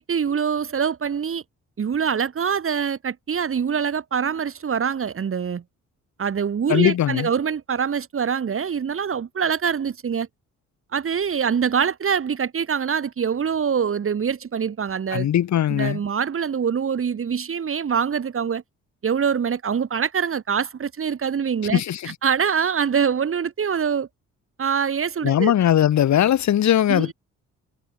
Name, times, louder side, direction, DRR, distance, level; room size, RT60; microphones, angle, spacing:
voice 1, 0.0-1.4 1.8-5.6 6.2-10.3 10.9-15.3 15.7-18.6 19.0-21.8 22.1-24.1 24.6-25.5 26.9-27.1, right 7 dB, 45° right, 3.6 m, -24 dB
voice 2, 6.7-7.3 15.1-16.0 21.7-22.1 25.2-27.1, left 11 dB, 65° left, 2.8 m, -19 dB
cardioid pair, 90°, 30 cm